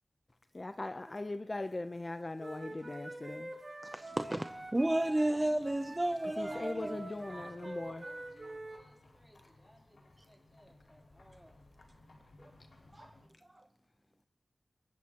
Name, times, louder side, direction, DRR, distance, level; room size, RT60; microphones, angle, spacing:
voice 1, 0.5-3.5 6.4-8.0, left 2 dB, 40° left, 0.6 m, -40 dB
Wind instrument woodwind instrument, 2.4-5.3 5.6-8.8, right 1 dB, 50° right, 3.6 m, -46 dB
voice 2, 3.8-7.1 12.4-12.5 12.9-13.1 13.5-13.6, right 1 dB, 25° right, 0.6 m, -33 dB
sound 1, 4.3-13.3, left 2 dB, 85° left, 5.0 m, -61 dB
voice 3, 6.5-11.6, equal, ahead, 3.4 m, -57 dB
22.5 x 19.0 x 2.9 m
wide cardioid pair, 60°, 0 cm